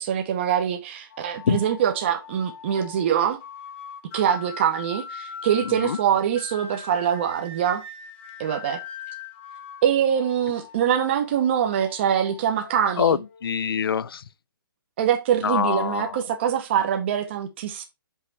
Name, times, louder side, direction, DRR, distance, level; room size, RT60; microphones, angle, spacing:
voice 1, 0.0-3.4 4.1-7.8 8.4-8.8 9.8-13.2 15.0-17.8, right 9 dB, 30° right, 0.8 m, -24 dB
sound 1, 1.1-13.9, left 6 dB, 35° left, 1.0 m, -41 dB
voice 2, 5.6-6.0 13.0-14.2 15.4-16.2, left 7 dB, 85° left, 0.4 m, -24 dB
5.6 x 4.0 x 4.6 m
hypercardioid pair, 165°, 12 cm